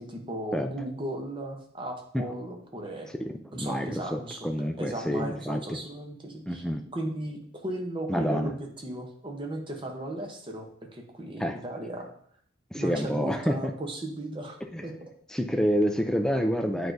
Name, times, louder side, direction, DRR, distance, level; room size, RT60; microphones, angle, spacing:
voice 1, 0.0-3.1 3.5-6.6 6.9-12.1 12.8-14.6 14.8-14.9 16.7-16.9, right 1 dB, 25° right, 2 dB, 0.8 m, -36 dB
voice 2, 3.2-5.8 6.5-6.8 8.1-8.5 11.4-11.6 12.7-13.7 14.7-14.9 15.3-16.9, equal, 5° left, 4 dB, 0.4 m, -28 dB
8.4 x 4.5 x 2.6 m, 0.63 s
head